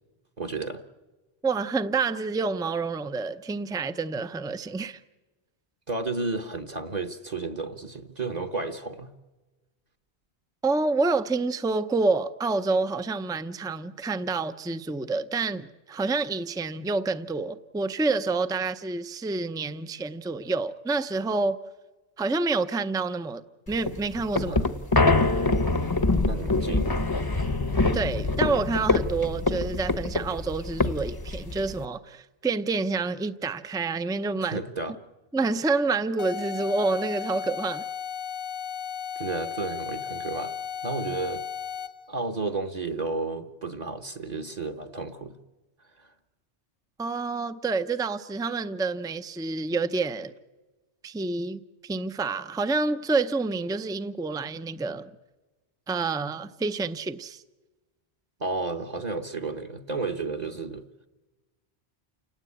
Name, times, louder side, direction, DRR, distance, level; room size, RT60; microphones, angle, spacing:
voice 1, 0.4-0.8 5.9-9.1 24.5-24.7 26.3-27.0 34.4-34.9 39.2-40.5 40.8-41.4 42.1-45.3 46.0-46.1 58.4-60.8, right 3 dB, 40° right, 1.1 m, -32 dB
voice 2, 1.4-5.0 10.6-21.6 22.2-23.4 23.7-24.6 27.9-34.6 35.3-37.8 47.0-50.3 51.0-55.1 55.9-57.4, right 3 dB, 5° right, 0.5 m, -28 dB
sound 1, 23.7-31.8, left 3 dB, 20° left, 0.8 m, -25 dB
sound 2, 36.2-42.1, left 8 dB, 55° left, 1.1 m, -35 dB
29.0 x 17.5 x 8.5 m
omnidirectional pair, 1.1 m